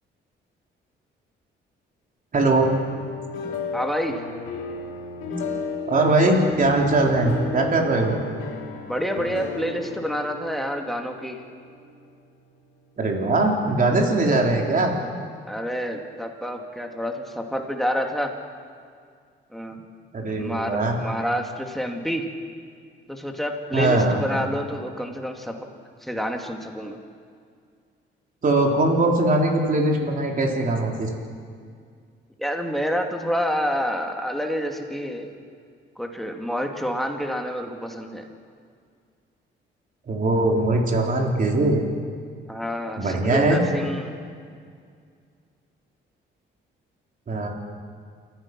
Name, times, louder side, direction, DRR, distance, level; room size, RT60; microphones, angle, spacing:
voice 1, 2.3-2.7 5.9-8.2 13.0-14.9 20.1-21.0 23.7-24.2 28.4-31.1 40.1-41.8 43.0-43.6 47.3-47.5, right 2 dB, 45° right, 0 dB, 3.8 m, -21 dB
sound 1, 2.6-12.5, left 4 dB, 90° left, 2.6 m, -34 dB
voice 2, 3.7-4.2 8.8-11.4 14.1-14.3 15.5-18.3 19.5-19.8 20.3-22.3 23.1-25.6 26.0-27.0 32.4-35.3 36.0-38.3 42.5-44.1, equal, ahead, 2 dB, 2.5 m, -28 dB
28.5 x 15.0 x 6.1 m, 2.1 s
cardioid pair, 90°, 20 cm